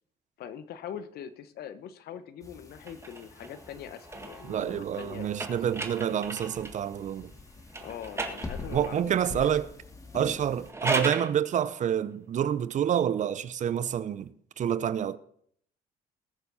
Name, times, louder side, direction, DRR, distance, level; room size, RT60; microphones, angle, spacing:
voice 1, 0.4-5.6 6.0-6.1 7.8-9.4, left 9 dB, 70° left, 1.1 m, -42 dB
sound 1, 2.4-10.7, left 3 dB, 20° left, 1.9 m, -45 dB
sound 2, 2.8-6.9 7.7-9.1 10.5-11.3, right 3 dB, 15° right, 1.7 m, -36 dB
voice 2, 4.4-7.3 8.7-9.7 10.1-14.3 14.6-15.2, right 9 dB, 45° right, 0.7 m, -28 dB
19.5 x 7.0 x 4.2 m
cardioid pair, 110°, 17 cm